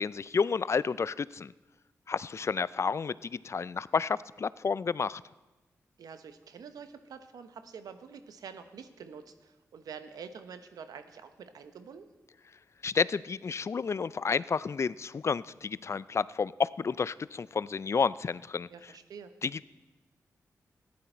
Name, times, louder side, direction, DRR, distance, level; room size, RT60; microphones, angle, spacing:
voice 1, 0.0-1.5 2.1-5.2 12.8-18.7 19.4-19.6, left 5 dB, 50° left, 19 dB, 0.3 m, -30 dB
voice 2, 6.0-12.1 18.7-19.3, right 6 dB, 90° right, 10 dB, 0.8 m, -47 dB
14.5 x 10.5 x 4.4 m, 1.1 s
cardioid pair, 55°, 6 cm